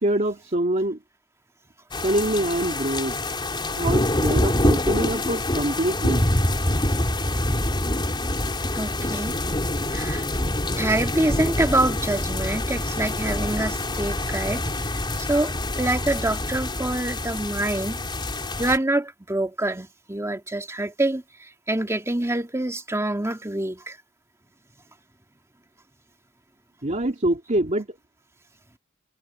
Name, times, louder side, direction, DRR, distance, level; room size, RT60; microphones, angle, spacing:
voice 1, 0.0-1.0 2.0-3.2 3.8-6.3 26.8-27.9, right 1 dB, 35° right, 2.6 m, -25 dB
sound 1, 1.9-18.8, left 1 dB, 25° left, 3.8 m, -26 dB
voice 2, 8.7-9.4 9.9-10.2 10.8-14.6 15.2-18.0 18.6-24.0, right 1 dB, 15° right, 2.0 m, -26 dB
head